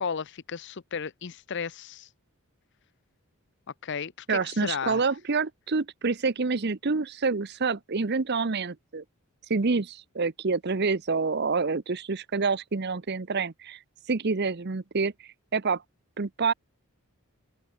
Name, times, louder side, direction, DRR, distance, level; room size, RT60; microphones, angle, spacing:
voice 1, 0.0-2.1 3.8-5.0, left 6 dB, 50° left, 0.6 m, -34 dB
voice 2, 4.3-9.0 9.5-13.8 14.1-15.1 15.5-15.8 16.2-16.5, right 4 dB, 50° right, 0.8 m, -27 dB
open air
head